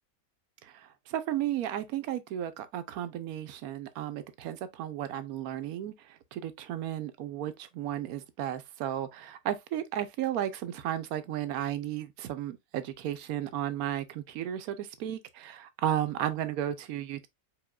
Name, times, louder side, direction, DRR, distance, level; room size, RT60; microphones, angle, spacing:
voice 1, 0.6-17.3, right 11 dB, 80° right, 1.1 m, -34 dB
4.8 x 3.7 x 2.3 m
omnidirectional pair, 1.5 m